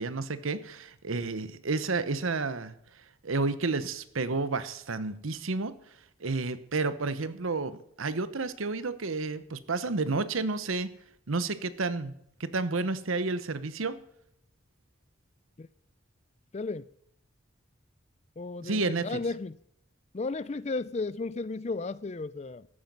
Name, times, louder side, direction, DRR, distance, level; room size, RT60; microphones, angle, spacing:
voice 1, 0.0-2.7 3.2-5.8 6.2-10.9 11.3-12.1 12.4-14.0 18.6-19.2, right 3 dB, 80° right, 0.9 m, -31 dB
voice 2, 16.5-16.9 18.4-19.6 20.1-22.7, left 3 dB, 30° left, 0.4 m, -34 dB
14.0 x 9.0 x 5.4 m
head